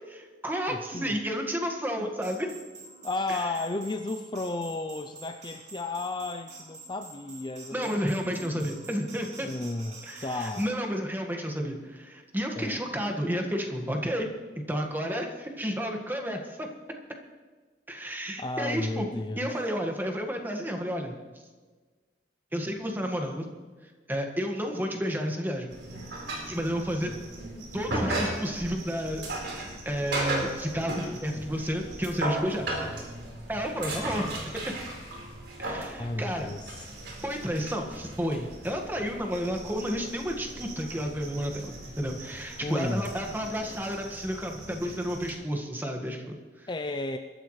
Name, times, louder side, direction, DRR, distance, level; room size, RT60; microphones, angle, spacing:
voice 1, 0.1-2.5 3.3-3.5 7.7-9.5 10.1-14.3 14.5-16.7 17.9-19.1 19.4-21.1 22.5-23.5 24.1-25.7 26.5-27.1 27.7-32.7 33.5-34.4 34.6-34.7 35.6-36.5 37.2-46.7, equal, 10° right, 2 dB, 1.7 m, -31 dB
voice 2, 0.7-1.2 2.0-2.1 3.0-8.1 8.4-8.7 9.4-10.7 12.6-12.8 18.4-19.5 36.0-36.9 42.6-43.1 46.7-47.2, left 2 dB, 25° left, 6 dB, 0.5 m, -33 dB
sound 1, 2.2-10.7, right 3 dB, 40° right, 3.1 m, -48 dB
sound 2, 25.7-45.3, right 1 dB, 80° right, 4.5 m, -37 dB
23.5 x 13.0 x 3.3 m, 1.4 s
head